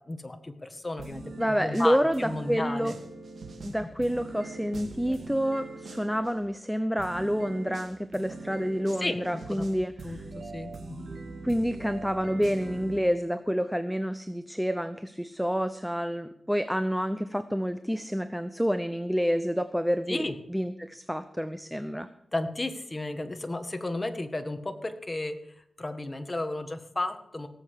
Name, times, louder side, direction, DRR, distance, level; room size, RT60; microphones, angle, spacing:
voice 1, 0.1-1.2 1.5-2.9 3.7-3.8 9.0-9.2 9.5-9.7 10.0-11.1 20.1-20.3 22.3-25.4 25.8-27.5, left 2 dB, 25° left, 7 dB, 1.6 m, -33 dB
sound 1, 1.0-6.3 7.0-13.0, right 3 dB, 75° right, 2.1 m, -42 dB
voice 2, 1.4-2.9 3.6-10.2 11.4-20.2 20.5-22.1, equal, ahead, 11 dB, 0.7 m, -28 dB
18.0 x 7.9 x 6.6 m, 0.75 s
wide cardioid pair, 80°, 0 cm